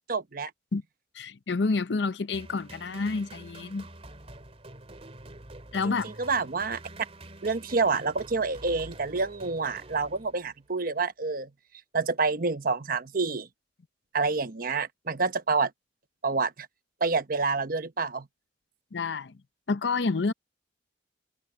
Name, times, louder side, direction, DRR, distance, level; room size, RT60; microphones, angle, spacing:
voice 1, 0.1-0.5 5.8-6.8 7.4-11.5 11.9-13.5 14.1-15.7 16.2-16.7 17.0-18.3, right 4 dB, 55° right, 1.0 m, -28 dB
voice 2, 1.1-3.9 5.7-6.1 18.9-19.3 19.7-20.3, left 4 dB, 75° left, 0.7 m, -28 dB
sound 1, 2.3-10.6, right 2 dB, 35° right, 2.8 m, -47 dB
head